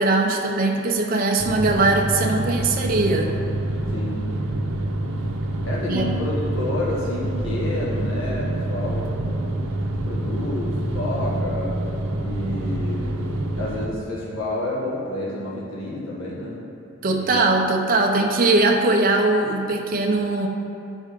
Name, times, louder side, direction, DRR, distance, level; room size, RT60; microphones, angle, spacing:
voice 1, 0.0-3.3 5.9-6.1 17.0-20.5, right 2 dB, 40° right, 0 dB, 0.6 m, -20 dB
sound 1, 1.4-13.9, right 1 dB, 85° right, 0.7 m, -27 dB
voice 2, 3.9-4.3 5.6-9.1 9.8-11.8 12.2-13.2 13.5-16.7 17.0-17.5, left 1 dB, 70° left, -5 dB, 1.3 m, -29 dB
8.3 x 5.2 x 5.0 m, 2.8 s
head